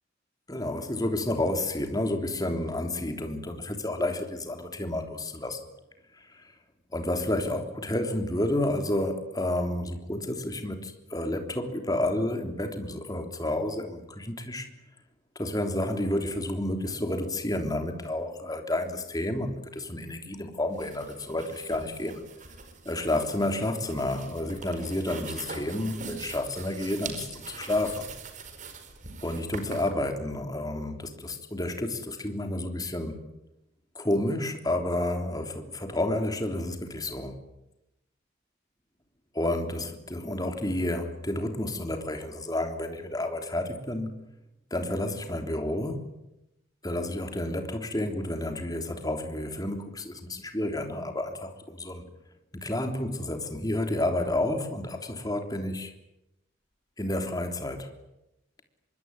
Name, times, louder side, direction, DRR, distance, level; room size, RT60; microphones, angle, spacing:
voice 1, 0.5-5.6 6.1-6.5 6.9-14.7 15.3-22.2 22.8-28.1 29.2-33.2 33.9-37.4 39.3-44.1 44.7-46.0 46.8-52.1 52.5-55.9 57.0-57.9, left 1 dB, 20° left, 5 dB, 3.4 m, -30 dB
sound 1, 20.7-29.9, right 4 dB, 40° right, 4.8 m, -43 dB
26.0 x 23.5 x 9.7 m, 0.89 s
head